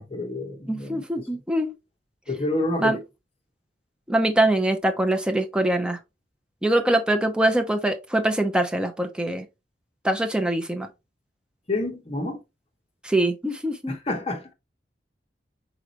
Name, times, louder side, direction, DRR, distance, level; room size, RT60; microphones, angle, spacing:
voice 1, 0.0-1.3 2.3-3.0 11.7-12.4 13.9-14.5, left 2 dB, 35° left, 1.0 m, -29 dB
voice 2, 0.7-1.7 2.8-3.0 4.1-6.0 6.6-9.5 10.0-10.9 13.0-14.0, right 1 dB, 5° right, 0.6 m, -23 dB
4.7 x 3.8 x 2.9 m
head